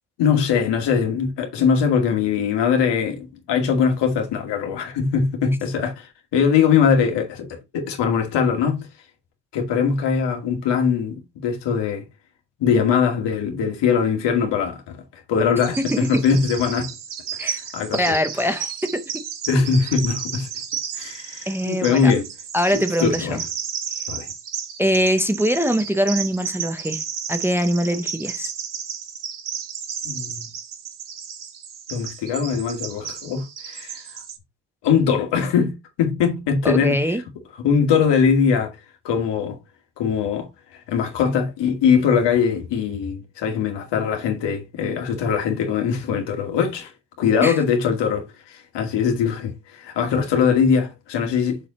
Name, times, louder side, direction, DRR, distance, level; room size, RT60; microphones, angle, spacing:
voice 1, 0.2-8.9 9.5-12.0 12.6-15.0 15.3-16.9 17.4-18.1 19.5-20.5 20.9-22.3 22.7-23.4 24.1-24.3 30.0-30.5 31.9-34.0 34.8-37.0 37.6-38.7 39.0-39.6 40.0-40.5 40.9-46.9 47.2-51.6, left 6 dB, 85° left, 2.3 m, -21 dB
Bird vocalization bird call bird song, 15.6-34.4, right 8 dB, 50° right, 1.5 m, -33 dB
voice 2, 17.9-19.2 21.5-22.1 22.5-23.4 24.8-27.0 27.3-28.5 36.6-37.2 47.4-47.6, equal, 5° right, 0.5 m, -22 dB
7.1 x 4.8 x 4.0 m
cardioid pair, 160°, 41 cm